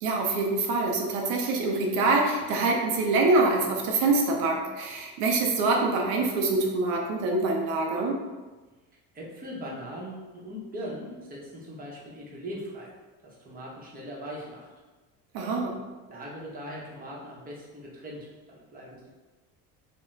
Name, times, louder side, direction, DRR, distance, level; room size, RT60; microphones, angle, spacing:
voice 1, 0.0-8.2 15.3-15.7, right 3 dB, 90° right, 0 dB, 0.5 m, -25 dB
voice 2, 9.1-12.9 13.2-14.7 16.1-19.1, equal, 25° right, -4 dB, 0.7 m, -40 dB
2.4 x 2.1 x 3.1 m, 1.2 s
supercardioid pair, 105°, 38 cm